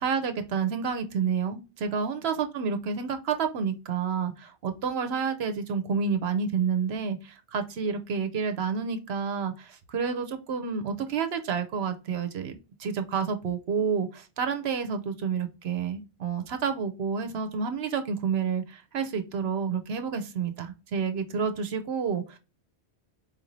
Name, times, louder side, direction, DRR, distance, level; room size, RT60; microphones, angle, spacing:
voice 1, 0.0-22.4, right 6 dB, 70° right, 7 dB, 0.8 m, -29 dB
4.5 x 2.5 x 3.0 m, 0.29 s
omnidirectional pair, 1.1 m